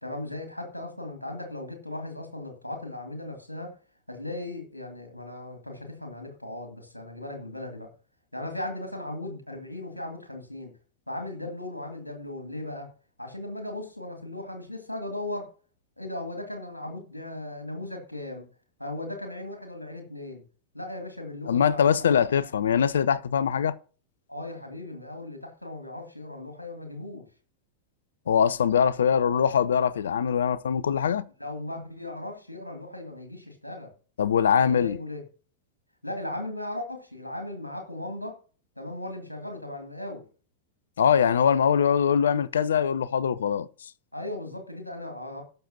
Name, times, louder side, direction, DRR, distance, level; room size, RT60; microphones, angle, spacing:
voice 1, 0.0-3.8 4.1-7.9 8.3-10.7 11.1-12.9 13.2-15.5 16.0-18.5 18.8-20.4 20.7-22.5 24.3-27.3 31.4-33.9 34.5-35.2 36.0-38.4 38.8-40.2 44.1-45.4, left 2 dB, 85° left, 2.3 m, -37 dB
voice 2, 21.5-23.8 28.3-31.2 34.2-35.0 41.0-43.9, left 7 dB, 65° left, 0.5 m, -22 dB
17.0 x 6.7 x 2.8 m
figure-of-eight pair, 90°, 0 cm